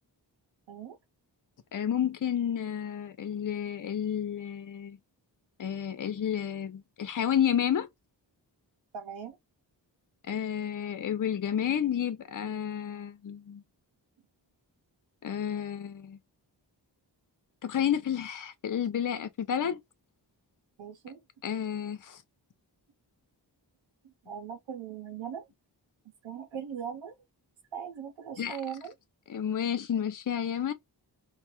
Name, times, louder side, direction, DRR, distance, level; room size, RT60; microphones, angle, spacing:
voice 1, 1.7-5.0 5.6-7.9 10.3-13.6 15.2-16.2 17.6-19.8 21.4-22.2 28.4-28.6 29.3-30.7, left 9 dB, 45° left, 0.6 m, -31 dB
voice 2, 8.9-9.4 20.8-21.2 24.0-25.5 26.2-27.2 27.7-28.9, right 8 dB, 90° right, 0.7 m, -39 dB
4.5 x 2.1 x 2.9 m
wide cardioid pair, 60°, 44 cm